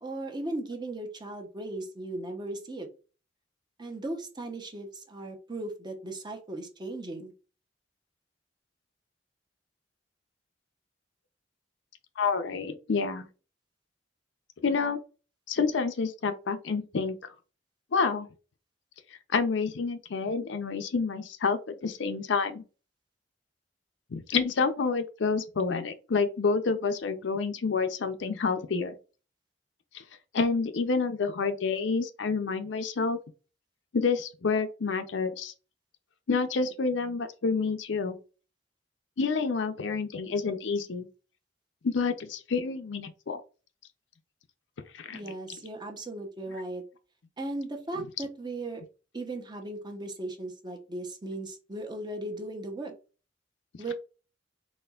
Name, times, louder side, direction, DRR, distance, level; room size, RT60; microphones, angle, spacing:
voice 1, 0.0-2.9 3.8-7.3 45.1-46.8 47.4-48.8 49.1-52.9 53.8-53.9, right 2 dB, 25° right, 0.8 m, -37 dB
voice 2, 12.2-13.3 14.6-15.0 15.5-17.2 17.9-18.3 19.3-22.6 24.1-29.0 30.3-33.2 33.9-35.5 36.3-38.2 39.2-41.1 41.8-43.4 44.9-45.2, left 4 dB, 70° left, 0.5 m, -28 dB
4.2 x 3.0 x 2.3 m
head